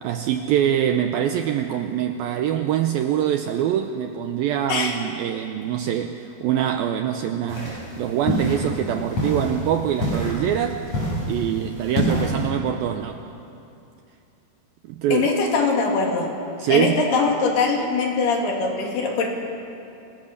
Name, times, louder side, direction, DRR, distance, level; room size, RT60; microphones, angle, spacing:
voice 1, 0.0-10.8 11.3-13.2 14.9-15.3 16.6-17.0, right 10 dB, 80° right, 7 dB, 2.2 m, -24 dB
sound 1, 7.5-12.5, equal, 40° left, 8.3 m, -27 dB
voice 2, 15.1-16.3 16.7-19.3, left 4 dB, 65° left, 1 dB, 4.3 m, -22 dB
27.5 x 20.5 x 6.7 m, 2.7 s
omnidirectional pair, 5.0 m